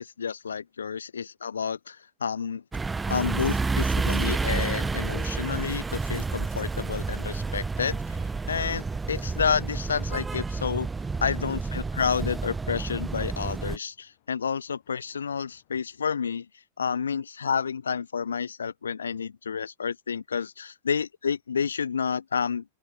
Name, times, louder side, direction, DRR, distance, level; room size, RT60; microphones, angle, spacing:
voice 1, 0.0-2.6 3.1-8.0 8.5-10.9 11.2-16.5 16.8-22.6, left 6 dB, 70° left, 0.3 m, -30 dB
sound 1, 2.7-13.8, right 4 dB, 10° right, 0.4 m, -30 dB
sound 2, 3.0-16.5, left 18 dB, 50° left, 6.5 m, -69 dB
open air
figure-of-eight pair, 90°, 0 cm